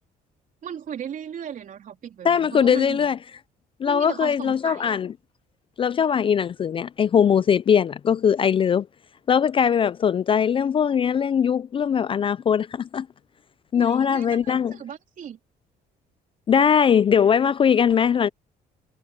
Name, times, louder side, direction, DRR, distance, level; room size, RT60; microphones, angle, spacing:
voice 1, 0.6-3.0 3.9-5.0 13.7-15.4, right 9 dB, 50° right, 3.4 m, -36 dB
voice 2, 2.2-3.2 3.8-5.1 5.8-8.9 9.3-13.1 13.7-14.7 16.5-18.3, left 7 dB, 30° left, 0.4 m, -20 dB
cardioid pair, 110°, 17 cm